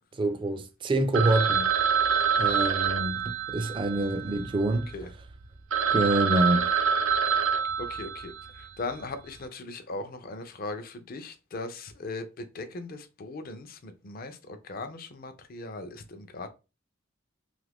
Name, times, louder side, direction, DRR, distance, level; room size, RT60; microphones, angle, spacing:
voice 1, 0.1-1.7 2.4-4.9 5.9-6.7, right 1 dB, 25° right, 0.3 m, -26 dB
Telephone, 1.1-4.9 5.4-5.5 5.7-8.6, right 7 dB, 80° right, 0.5 m, -26 dB
voice 2, 4.0-5.1 7.8-16.5, left 3 dB, 45° left, 0.5 m, -39 dB
2.9 x 2.5 x 3.3 m
head